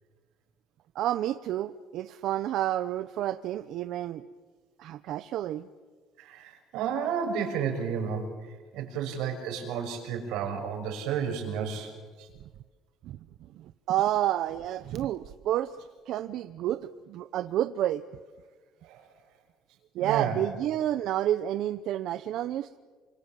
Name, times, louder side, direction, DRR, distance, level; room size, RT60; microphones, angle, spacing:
voice 1, 0.9-4.2 4.8-5.7 13.0-13.2 13.5-15.8 16.1-18.0 19.9-22.8, right 12 dB, 55° right, 12 dB, 0.7 m, -30 dB
voice 2, 6.2-8.3 8.7-11.9 12.2-12.3 18.8-19.0 20.0-20.3, right 7 dB, 85° right, 4 dB, 6.1 m, -31 dB
28.0 x 25.5 x 7.5 m, 1.4 s
cardioid pair, 175°, 0 cm